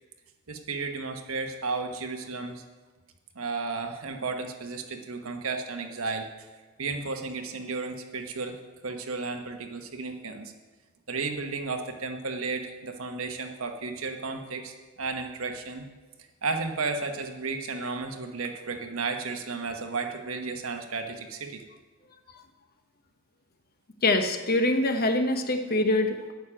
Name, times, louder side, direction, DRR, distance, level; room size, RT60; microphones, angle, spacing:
voice 1, 0.5-2.6 3.3-6.3 6.8-10.5 11.1-15.9 16.4-21.6, right 4 dB, 80° right, 5 dB, 1.2 m, -33 dB
voice 2, 24.0-26.3, left 2 dB, 45° left, 6 dB, 1.0 m, -24 dB
9.5 x 6.6 x 8.7 m, 1.3 s
head